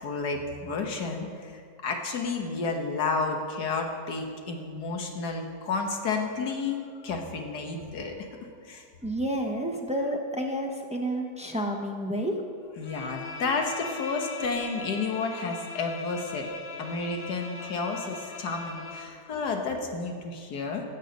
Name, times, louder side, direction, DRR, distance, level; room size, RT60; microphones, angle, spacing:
voice 1, 0.0-8.9 12.8-16.5 16.8-20.8, left 4 dB, 70° left, 3 dB, 1.8 m, -31 dB
voice 2, 9.0-12.4, right 1 dB, 5° right, 2 dB, 0.5 m, -30 dB
Bowed string instrument, 12.8-19.2, left 5 dB, 50° left, 1.2 m, -40 dB
15.5 x 7.4 x 5.2 m, 2.2 s
omnidirectional pair, 1.8 m